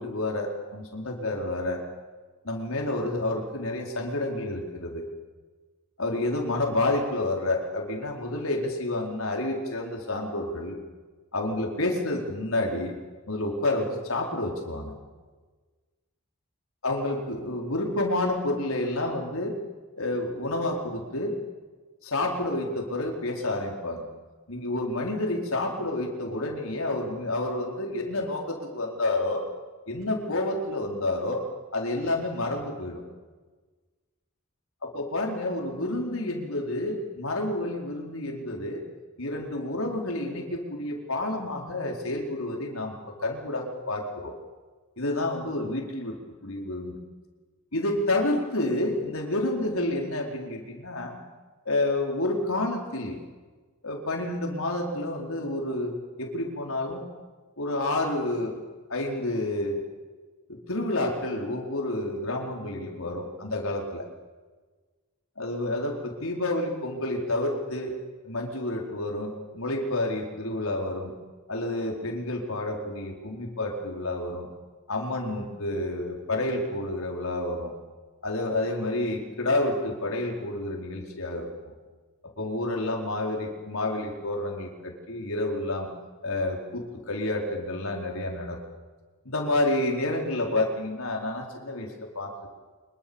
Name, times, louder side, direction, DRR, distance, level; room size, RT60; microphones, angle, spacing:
voice 1, 0.0-1.8 2.4-5.1 6.0-10.8 11.3-13.0 13.3-14.9 16.8-19.6 20.0-21.3 22.0-24.1 24.5-29.5 29.9-31.4 31.7-33.0 34.8-38.8 39.2-44.3 45.0-46.9 47.7-51.2 51.6-53.2 53.8-57.0 57.6-59.8 60.5-64.1 65.4-68.0 68.2-71.1 71.5-74.5 74.9-77.7 78.2-81.7 82.2-85.9 86.2-88.6 89.2-92.5, left 2 dB, 90° left, 1 dB, 4.6 m, -29 dB
25.5 x 22.5 x 7.2 m, 1.3 s
head